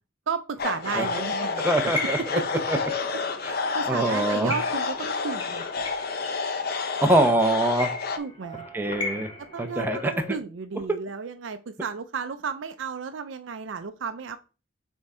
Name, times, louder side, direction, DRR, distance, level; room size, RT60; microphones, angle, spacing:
voice 1, 0.3-1.7 2.4-2.5 3.5-5.6 8.2-8.7 9.5-14.4, right 5 dB, 70° right, 9 dB, 0.5 m, -33 dB
sound 1, 0.6-8.2, left 4 dB, 55° left, 0.7 m, -30 dB
sound 2, 0.6-10.4, left 3 dB, 30° left, 1.8 m, -37 dB
voice 2, 1.6-2.4 2.7-2.8 3.4-3.5 3.9-4.5 7.0-7.9 8.7-9.3 9.6-10.1 10.9-11.0, right 1 dB, 10° right, 6 dB, 0.7 m, -23 dB
6.2 x 3.6 x 4.2 m, 0.33 s
head